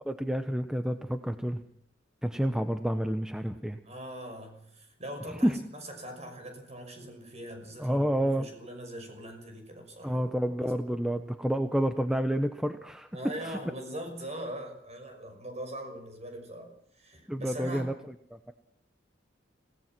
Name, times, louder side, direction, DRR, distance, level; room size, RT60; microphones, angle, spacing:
voice 1, 0.1-1.6 2.2-3.8 5.4-5.6 7.8-8.5 10.0-13.1 13.4-13.6 17.3-17.9 18.3-18.5, equal, 5° right, 8 dB, 0.9 m, -29 dB
voice 2, 3.8-8.0 8.4-10.3 10.6-10.7 13.1-17.9, right 1 dB, 35° right, 5 dB, 6.0 m, -41 dB
26.0 x 18.0 x 6.1 m, 0.66 s
head